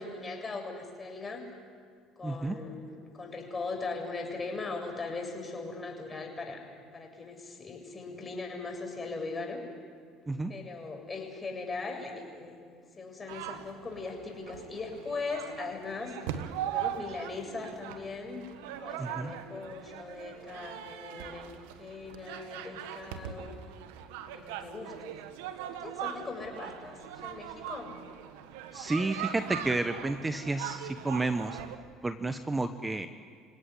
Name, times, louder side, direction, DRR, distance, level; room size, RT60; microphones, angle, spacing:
voice 1, 0.0-1.4 2.2-6.7 6.9-9.6 10.5-12.6 12.9-16.2 16.6-18.4 18.8-23.6 24.3-25.2 25.7-27.9, left 3 dB, 25° left, 2 dB, 7.4 m, -39 dB
voice 2, 2.2-2.6 10.3-10.5 19.0-19.3 28.7-31.6 32.0-33.1, right 2 dB, 15° right, 9 dB, 1.2 m, -31 dB
sound 1, 13.3-31.8, right 10 dB, 80° right, 1.5 m, -41 dB
28.0 x 17.5 x 10.0 m, 2.1 s
hypercardioid pair, 70°, 0 cm